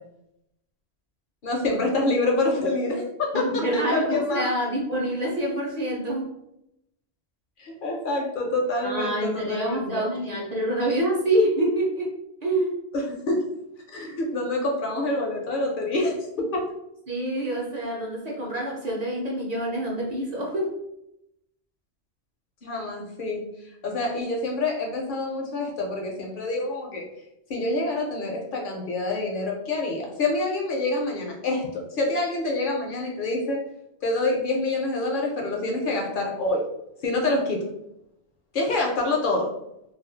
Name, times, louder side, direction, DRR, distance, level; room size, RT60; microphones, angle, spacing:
voice 1, 1.4-4.6 7.6-10.0 12.9-13.4 13.9-16.6 22.6-23.4 23.8-27.1 27.5-33.6 34.0-36.6 37.0-37.6 38.5-39.5, left 2 dB, 65° left, 0 dB, 0.7 m, -26 dB
voice 2, 3.4-6.3 8.8-12.8 17.1-20.8, right 1 dB, 50° right, -3 dB, 0.6 m, -26 dB
2.4 x 2.2 x 2.5 m, 0.81 s
omnidirectional pair, 1.0 m